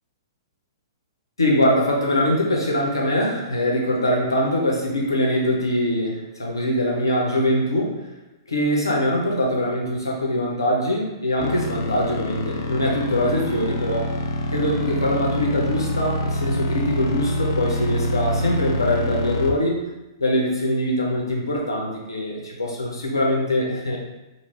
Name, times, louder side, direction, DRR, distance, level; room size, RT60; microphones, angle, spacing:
voice 1, 1.4-8.0 8.5-14.1 14.5-19.8 20.2-24.0, left 1 dB, 75° left, -1 dB, 0.8 m, -23 dB
sound 1, 11.4-19.5, left 1 dB, 50° left, 0.4 m, -26 dB
3.1 x 2.3 x 3.4 m, 1.0 s
figure-of-eight pair, 110°, 2 cm